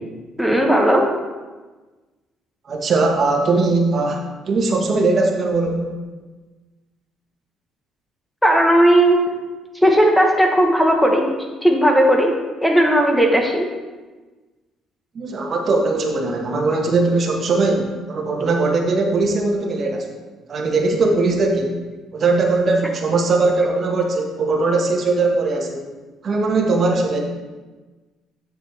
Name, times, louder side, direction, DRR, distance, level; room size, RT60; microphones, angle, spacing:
voice 1, 0.4-1.1 8.4-9.3 9.8-11.3 11.6-13.7, right 1 dB, 5° left, 1 dB, 1.0 m, -16 dB
voice 2, 2.7-4.2 4.5-5.9 15.1-20.1 20.5-21.8 22.1-25.9 26.2-27.2, right 3 dB, 45° right, 1 dB, 1.3 m, -19 dB
9.5 x 6.5 x 3.3 m, 1.3 s
cardioid pair, 100°, 0 cm